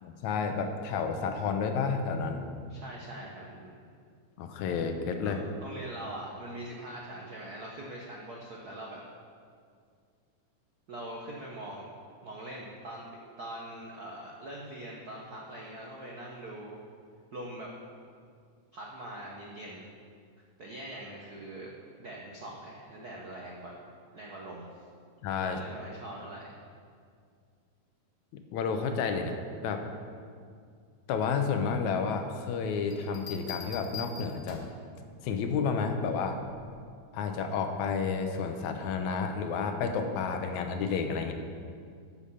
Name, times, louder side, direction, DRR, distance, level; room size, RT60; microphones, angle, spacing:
voice 1, 0.0-2.4 4.4-5.4 25.2-25.6 28.3-29.4 29.6-29.9 31.1-34.6 35.2-36.4 37.1-41.3, left 5 dB, 80° left, 6 dB, 2.2 m, -31 dB
voice 2, 2.7-3.8 5.2-9.0 10.9-11.9 12.2-13.0 13.4-16.8 17.3-17.7 18.7-19.9 20.6-21.7 22.0-23.7 24.1-24.8 25.4-26.5, right 1 dB, 70° right, -2 dB, 0.9 m, -42 dB
Bell, 32.9-34.9 36.5-36.8, left 6 dB, 55° left, 0.8 m, -43 dB
13.5 x 7.0 x 5.6 m, 2.2 s
omnidirectional pair, 3.4 m